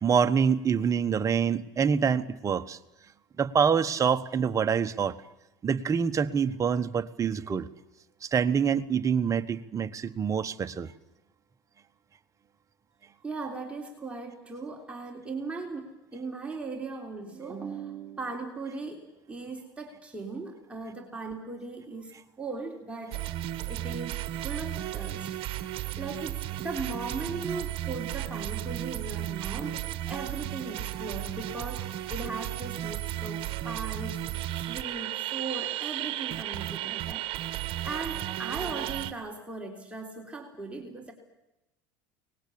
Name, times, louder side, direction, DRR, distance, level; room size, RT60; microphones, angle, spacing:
voice 1, 0.0-2.8 3.4-5.2 5.6-7.7 8.2-10.9, right 6 dB, 30° right, 9 dB, 1.2 m, -26 dB
voice 2, 13.2-23.3 23.6-34.2 34.6-37.6 37.8-41.1, right 3 dB, 10° right, 0 dB, 3.5 m, -38 dB
sound 1, 23.1-39.1, right 14 dB, 50° right, 1.4 m, -34 dB
23.5 x 20.0 x 8.6 m, 0.94 s
supercardioid pair, 105°, 12 cm